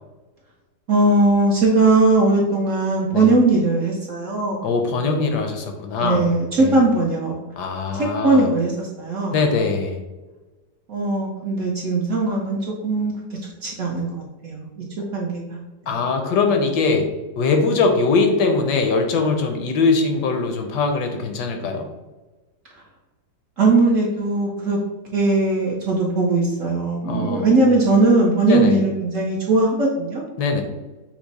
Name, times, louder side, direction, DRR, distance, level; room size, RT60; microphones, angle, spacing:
voice 1, 0.9-4.6 5.0-5.3 6.0-7.4 8.0-9.4 10.9-13.1 13.6-14.7 15.1-15.6 23.6-24.8 25.1-30.2, right 2 dB, 60° right, -2 dB, 0.8 m, -19 dB
voice 2, 4.6-6.3 6.6-6.8 7.6-8.5 9.3-10.0 15.9-17.1 17.4-21.9 27.0-27.7 28.5-28.8 30.4-30.6, left 4 dB, 75° left, 4 dB, 1.2 m, -21 dB
5.9 x 2.0 x 4.0 m, 1.2 s
omnidirectional pair, 1.9 m